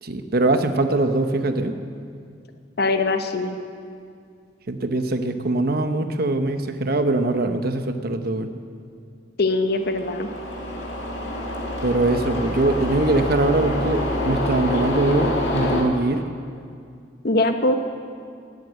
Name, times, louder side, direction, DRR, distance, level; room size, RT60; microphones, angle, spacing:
voice 1, 0.0-1.7 4.7-8.5 11.8-16.2, right 2 dB, 60° right, 8 dB, 0.9 m, -22 dB
voice 2, 2.8-3.6 9.4-10.3 14.7-14.8 17.2-17.8, left 2 dB, 60° left, 7 dB, 1.0 m, -22 dB
sound 1, 9.7-15.8, left 1 dB, 85° left, 2.2 m, -26 dB
19.0 x 8.0 x 7.7 m, 2.3 s
head